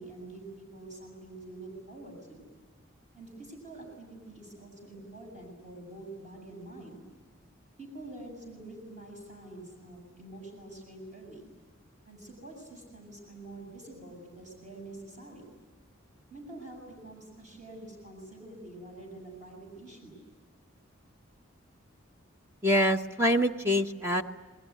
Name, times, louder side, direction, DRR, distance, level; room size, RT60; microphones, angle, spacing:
voice 1, 0.0-2.5 3.1-7.0 7.8-11.5 12.1-15.5 16.3-20.2, right 2 dB, 35° right, 1 dB, 7.3 m, -46 dB
voice 2, 22.6-24.2, equal, 10° right, 4 dB, 0.8 m, -25 dB
29.0 x 21.0 x 9.4 m, 1.4 s
head